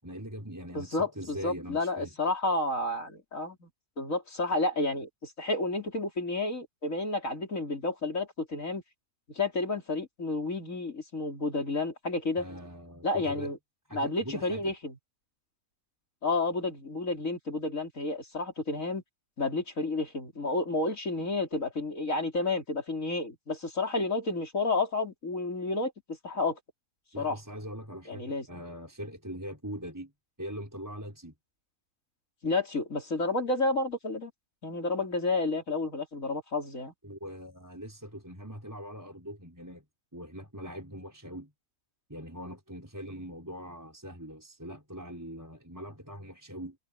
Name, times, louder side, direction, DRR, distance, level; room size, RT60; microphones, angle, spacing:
voice 1, 0.0-2.1 12.4-13.5 13.9-14.7 27.1-30.1 30.4-31.3 37.0-39.8 40.1-41.5 42.1-46.8, equal, 10° right, 5.1 m, -42 dB
voice 2, 0.7-3.7 4.0-8.8 9.3-12.4 13.0-13.6 13.9-15.0 16.2-19.0 19.4-26.6 27.2-27.4 28.1-28.5 32.4-34.3 34.6-36.9, left 2 dB, 60° left, 4.4 m, -31 dB
omnidirectional pair, 1.6 m